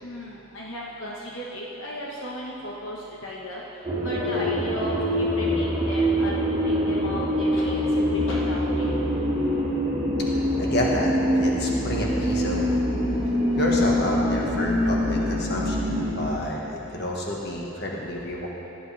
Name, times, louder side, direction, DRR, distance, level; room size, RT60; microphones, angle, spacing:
voice 1, 0.0-3.6 4.0-8.8, left 1 dB, 65° left, -4 dB, 1.3 m, -35 dB
sound 1, 3.8-16.3, equal, 25° right, 2.2 m, -24 dB
voice 2, 10.3-12.8 13.6-18.5, left 1 dB, 50° left, -2 dB, 1.6 m, -29 dB
17.0 x 11.0 x 3.4 m, 3.0 s
head